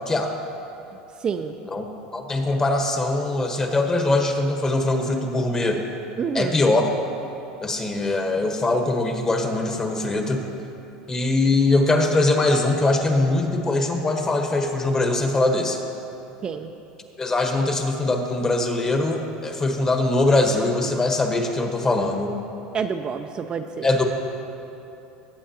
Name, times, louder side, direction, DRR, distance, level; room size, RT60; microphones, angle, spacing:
voice 1, 1.2-1.6 6.2-6.6 16.4-16.7 22.7-23.9, right 6 dB, 30° right, 6 dB, 0.4 m, -28 dB
voice 2, 2.1-5.8 6.3-6.9 7.6-10.5 11.1-15.8 17.2-22.3 23.8-24.0, left 2 dB, 20° left, 4 dB, 1.2 m, -22 dB
19.0 x 8.4 x 2.8 m, 2.9 s
supercardioid pair, 115°, 3 cm